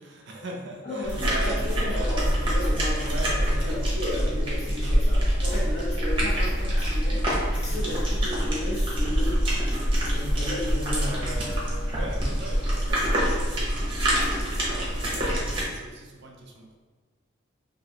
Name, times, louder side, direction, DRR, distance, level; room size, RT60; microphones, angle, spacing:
voice 1, 0.0-2.3 3.0-4.0 5.1-5.9 10.9-16.8, right 1 dB, 55° right, 1 dB, 0.4 m, -40 dB
voice 2, 0.8-9.4 10.1-11.1, left 1 dB, 35° left, -7 dB, 1.0 m, -34 dB
sound 1, 1.0-15.6, equal, 25° right, 0.8 m, -25 dB
3.0 x 2.5 x 2.7 m, 1.3 s
head